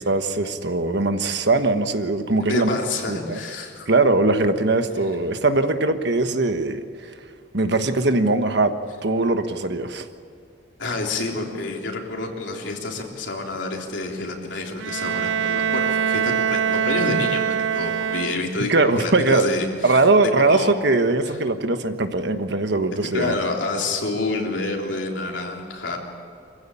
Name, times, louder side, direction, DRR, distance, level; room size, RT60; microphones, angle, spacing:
voice 1, 0.0-2.7 3.1-3.4 3.9-6.8 7.5-8.7 9.0-10.1 18.6-19.5 19.8-23.4, right 2 dB, 65° right, 8 dB, 1.3 m, -21 dB
voice 2, 2.4-3.9 10.8-18.7 19.0-20.0 20.4-20.7 23.0-26.0, left 3 dB, 80° left, 0 dB, 3.6 m, -28 dB
Bowed string instrument, 14.8-18.7, right 7 dB, 90° right, 0.5 m, -23 dB
25.0 x 15.5 x 8.7 m, 2.4 s
head